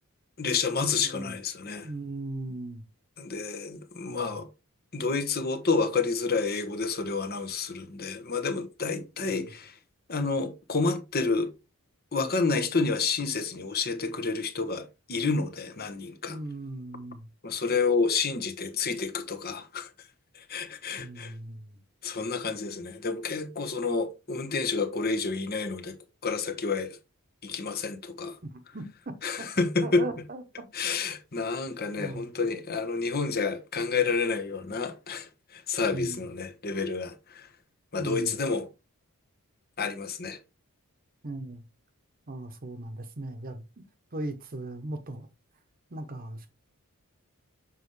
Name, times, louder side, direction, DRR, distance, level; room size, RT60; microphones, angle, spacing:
voice 1, 0.4-1.9 3.2-4.5 4.9-9.7 10.1-11.5 12.1-16.4 17.4-19.9 20.3-21.3 22.0-26.0 26.2-27.0 27.4-28.4 29.2-30.1 30.7-37.5 37.9-38.7 39.8-40.4, left 4 dB, 45° left, 1.2 m, -29 dB
voice 2, 1.0-1.3 1.8-2.8 4.0-4.4 8.9-9.5 16.3-17.3 21.0-21.8 28.4-29.5 29.8-30.4 32.0-32.3 35.9-36.3 38.0-38.3 41.2-41.6 42.3-43.6 44.1-45.3 45.9-46.5, right 2 dB, 40° right, 1.0 m, -38 dB
7.2 x 5.5 x 3.2 m
head